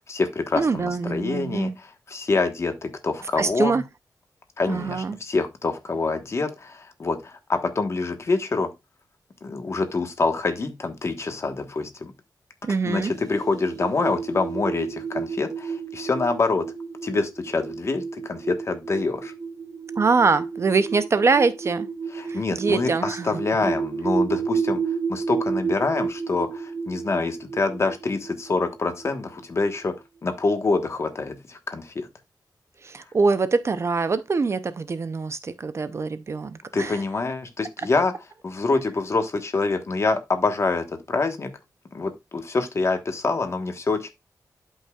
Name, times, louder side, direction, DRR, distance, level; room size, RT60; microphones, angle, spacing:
voice 1, 0.0-3.8 4.6-8.7 9.4-12.1 12.8-16.7 17.0-19.3 22.1-29.9 30.2-32.1 36.7-38.1 38.4-41.5 41.9-44.1, left 3 dB, 40° left, 1.3 m, -26 dB
voice 2, 0.5-1.7 3.4-3.8 4.7-5.2 12.6-13.1 20.0-21.9 22.3-23.3 32.8-37.0, right 4 dB, 40° right, 0.6 m, -24 dB
sound 1, 13.1-29.4, right 5 dB, 60° right, 1.1 m, -31 dB
12.0 x 5.5 x 2.4 m
wide cardioid pair, 155°, 7 cm